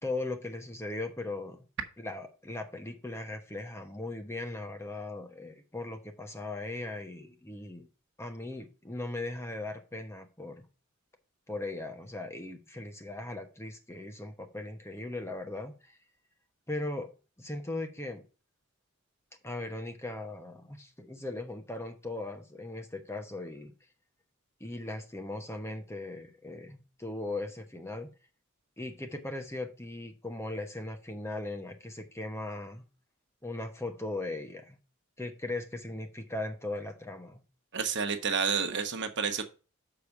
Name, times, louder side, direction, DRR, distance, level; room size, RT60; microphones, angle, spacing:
voice 1, 0.0-1.7 2.0-7.9 8.2-10.7 11.5-16.0 16.7-17.1 17.4-18.2 19.4-23.7 24.6-28.1 28.8-32.8 33.4-34.8 35.2-37.4, left 2 dB, 10° left, 1.0 m, -38 dB
voice 2, 37.7-39.5, right 6 dB, 55° right, 1.2 m, -30 dB
6.8 x 5.0 x 5.9 m
head